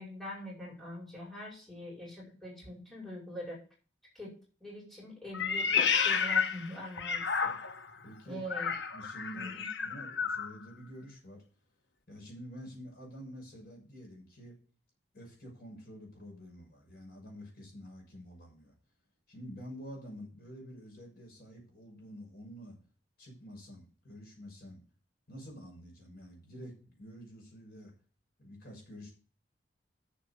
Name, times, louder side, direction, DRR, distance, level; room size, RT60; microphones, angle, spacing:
voice 1, 0.0-3.6 4.1-4.3 4.6-7.6 8.3-8.7 9.3-9.7, left 1 dB, ahead, -4 dB, 5.2 m, -43 dB
Meow, 5.3-7.9 8.5-10.5, left 6 dB, 85° left, 1.2 m, -31 dB
voice 2, 8.0-8.4 8.9-9.5 9.8-11.4 12.1-14.6 15.1-18.7 19.3-22.8 23.2-24.8 25.3-27.9 28.4-29.1, equal, 60° left, 0 dB, 6.3 m, -48 dB
8.3 x 7.4 x 6.8 m, 0.38 s
head